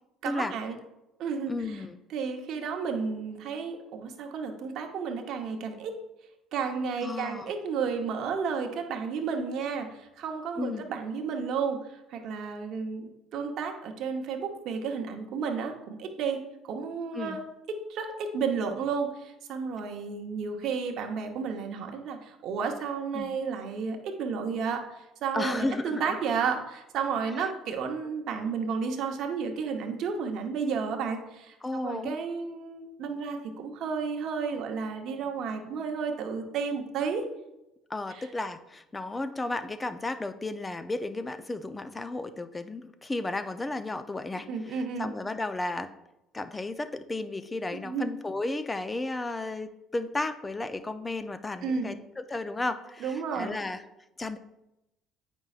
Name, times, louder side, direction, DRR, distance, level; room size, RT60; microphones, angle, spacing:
voice 1, 0.2-0.8 1.2-1.8 2.1-6.0 6.5-17.4 17.9-37.2 38.1-38.3 44.5-45.1 47.7-48.1 51.6-52.0 53.0-53.6, right 5 dB, 60° right, 4 dB, 0.9 m, -32 dB
voice 2, 1.5-2.0 7.0-7.5 10.6-10.8 17.1-17.4 23.1-23.3 25.3-26.2 27.4-27.5 31.6-32.2 37.9-45.9 46.3-53.8 54.2-54.4, left 2 dB, 20° left, 10 dB, 0.5 m, -33 dB
8.5 x 5.3 x 2.4 m, 0.92 s
hypercardioid pair, 60°, 0 cm